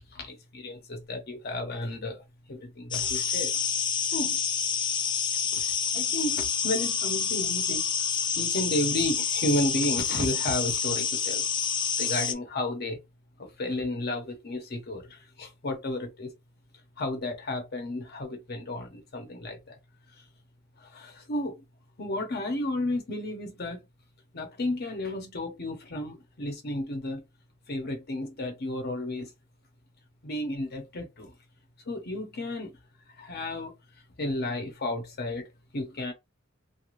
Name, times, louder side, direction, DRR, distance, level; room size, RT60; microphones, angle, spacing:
voice 1, 0.1-2.2 2.5-3.5 4.1-4.4 5.5-5.7 5.9-7.9 8.4-11.4 12.0-13.0 13.4-16.3 17.0-19.8 20.8-21.6 22.0-23.8 24.3-27.2 27.7-29.3 30.2-31.3 31.9-32.8 33.2-33.7 34.2-35.5 35.7-36.1, left 1 dB, 55° left, 0.8 m, -32 dB
sound 1, 2.9-12.3, left 7 dB, 25° left, 0.3 m, -28 dB
3.1 x 2.3 x 2.5 m
head